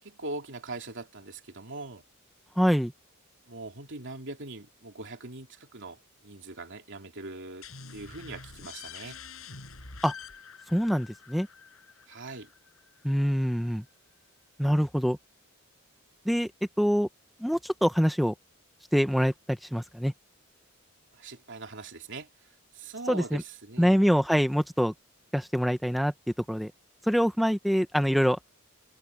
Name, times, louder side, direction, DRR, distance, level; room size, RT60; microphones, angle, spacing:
voice 1, 0.0-2.0 3.5-7.7 7.9-9.2 12.1-12.5 21.1-22.3 22.7-24.0, right 2 dB, 60° right, 2.9 m, -41 dB
voice 2, 2.6-2.9 10.0-10.1 10.7-11.5 13.0-13.8 14.6-15.2 16.3-16.5 16.8-17.1 17.4-18.3 18.9-20.1 23.1-23.4 23.8-24.9 25.3-26.1 26.5-26.7 27.1-28.5, equal, ahead, 0.9 m, -25 dB
sound 1, 7.6-13.1, left 5 dB, 75° left, 6.9 m, -46 dB
head